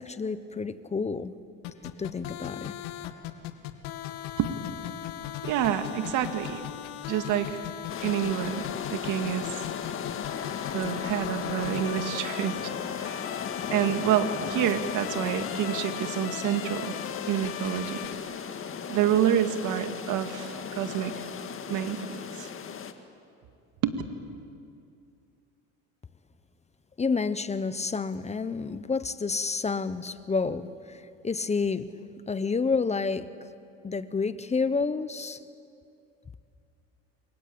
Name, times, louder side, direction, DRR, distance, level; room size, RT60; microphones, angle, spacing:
voice 1, 0.0-1.3 1.8-2.7 27.0-31.9 32.3-33.3 33.8-35.4, left 4 dB, 20° left, 14 dB, 1.0 m, -29 dB
sound 1, 1.6-18.1, left 12 dB, 75° left, 2.1 m, -38 dB
voice 2, 5.4-6.6 7.1-7.6 8.0-9.7 10.7-12.7 13.0-13.4 13.7-16.9 17.3-18.1 18.9-21.3 21.7-22.5 23.8-24.0, right 10 dB, 60° right, 7 dB, 2.2 m, -28 dB
sound 2, 7.9-22.9, left 7 dB, 35° left, 2.0 m, -36 dB
29.0 x 23.5 x 8.7 m, 2.5 s
supercardioid pair, 100°, 35 cm